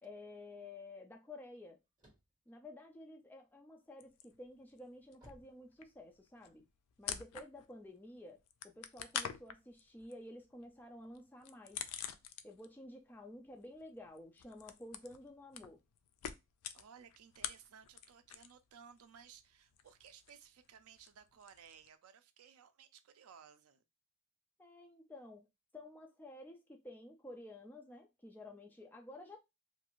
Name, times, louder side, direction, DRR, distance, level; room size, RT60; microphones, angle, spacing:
voice 1, 0.0-1.8 2.5-6.7 7.0-11.8 12.4-15.8 24.6-25.5 25.7-29.4, left 1 dB, 10° left, 0.3 m, -52 dB
sound 1, 1.5-3.7 4.2-6.4, equal, 20° right, 1.4 m, -64 dB
sound 2, 4.0-4.9 5.1-7.9 8.1-12.8 13.1-18.7 18.9-21.9, left 9 dB, 85° left, 0.3 m, -47 dB
voice 2, 16.7-23.8, right 7 dB, 75° right, 0.4 m, -59 dB
2.6 x 2.4 x 2.9 m
head